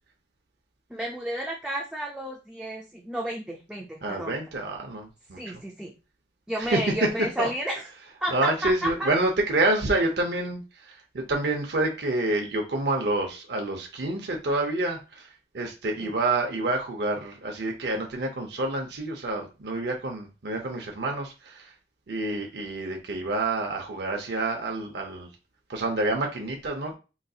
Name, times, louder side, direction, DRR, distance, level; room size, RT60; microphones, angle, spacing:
voice 1, 0.9-4.3 5.4-5.9 6.5-7.8 8.2-9.1 16.0-16.1, equal, 5° right, -1 dB, 0.3 m, -32 dB
voice 2, 4.0-5.6 6.6-7.1 7.4-7.5 8.3-15.3 15.5-21.7 22.1-25.3 25.7-27.0, right 2 dB, 70° right, 2 dB, 0.6 m, -28 dB
3.9 x 2.6 x 2.3 m, 0.31 s
head